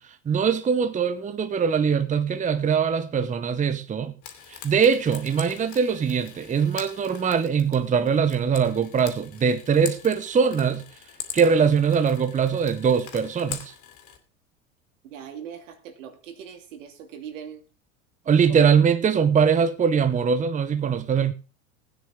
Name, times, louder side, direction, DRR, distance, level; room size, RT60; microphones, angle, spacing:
voice 1, 0.0-4.1 4.5-10.8 11.3-13.7 18.3-21.3, right 6 dB, 20° right, 0.9 m, -22 dB
Frying (food), 4.2-14.2, left 9 dB, 50° left, 3.1 m, -42 dB
voice 2, 15.0-17.6 18.5-18.7, right 8 dB, 75° right, 2.6 m, -41 dB
16.5 x 9.4 x 3.7 m
hypercardioid pair, 90°, 38 cm